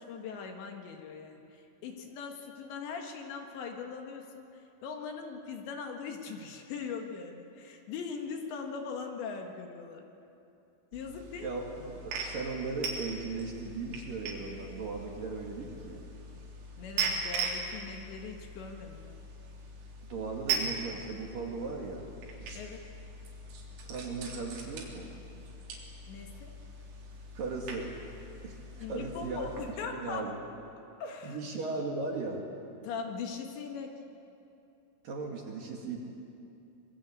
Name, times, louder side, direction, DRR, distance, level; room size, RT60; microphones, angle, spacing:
voice 1, 0.0-4.5 4.8-10.1 10.9-11.6 16.8-19.2 22.6-22.9 26.1-26.5 28.8-30.3 31.0-31.4 32.8-33.9, left 5 dB, 65° left, 3 dB, 3.6 m, -40 dB
sound 1, 10.9-29.7, right 4 dB, 85° right, 6.1 m, -40 dB
voice 2, 11.4-16.0 20.1-22.1 23.8-25.1 27.3-27.9 28.4-29.5 29.9-30.4 31.2-32.5 35.0-36.0, right 3 dB, 50° right, 0 dB, 3.2 m, -37 dB
25.5 x 23.5 x 8.7 m, 2.7 s
omnidirectional pair, 5.8 m